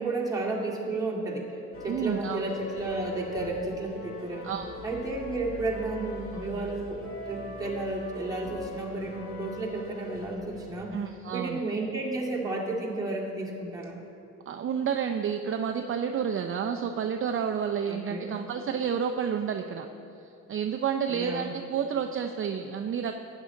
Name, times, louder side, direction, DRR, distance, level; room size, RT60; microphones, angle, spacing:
voice 1, 0.0-1.5 1.8-4.5 4.8-11.0 11.3-14.0 17.9-18.3 21.1-21.5, right 2 dB, 10° right, -4 dB, 2.2 m, -32 dB
sound 1, 1.7-10.8, left 1 dB, 45° left, 1.8 m, -42 dB
voice 2, 1.9-2.4 4.4-4.7 10.9-11.6 14.5-19.9 20.5-23.2, right 7 dB, 45° right, 6 dB, 0.5 m, -30 dB
12.0 x 9.1 x 3.8 m, 2.8 s
cardioid pair, 90°, 30 cm